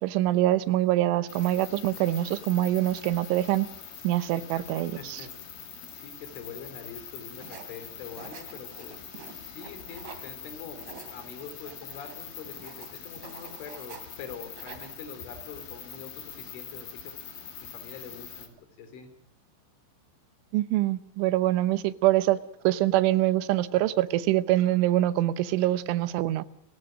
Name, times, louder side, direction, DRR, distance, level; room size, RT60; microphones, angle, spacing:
voice 1, 0.0-3.7 4.0-5.2 20.5-22.4 22.6-26.5, right 15 dB, 90° right, 3.4 m, -24 dB
sound 1, 1.3-18.5, left 8 dB, 55° left, 4.1 m, -44 dB
voice 2, 4.5-5.5 5.9-9.0 9.4-19.1, left 6 dB, 80° left, 5.9 m, -45 dB
sound 2, 7.4-10.3 10.6-14.2 14.5-15.2, right 7 dB, 70° right, 4.6 m, -48 dB
29.0 x 15.5 x 6.4 m
omnidirectional pair, 5.4 m